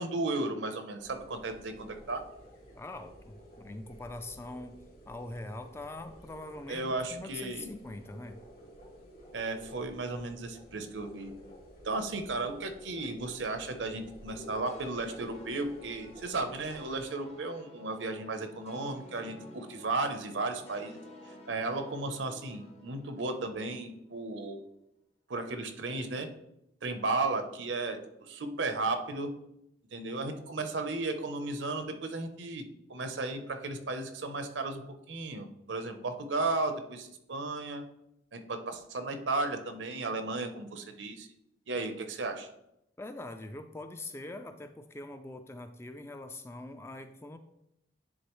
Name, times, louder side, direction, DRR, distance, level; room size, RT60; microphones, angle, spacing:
voice 1, 0.0-2.2 6.7-7.7 9.3-11.3 11.8-21.0 21.5-24.6 25.3-26.3 26.8-29.3 29.9-32.6 32.9-37.8 38.3-41.3 41.7-42.5, right 3 dB, 80° right, 7 dB, 0.8 m, -34 dB
sound 1, 1.0-17.1, equal, 50° left, 1.9 m, -52 dB
voice 2, 2.7-4.8 5.1-8.4 43.0-47.4, left 2 dB, 15° left, 8 dB, 0.3 m, -43 dB
sound 2, 14.7-24.0, left 1 dB, 35° left, 0.7 m, -53 dB
10.0 x 3.7 x 3.1 m, 0.82 s
head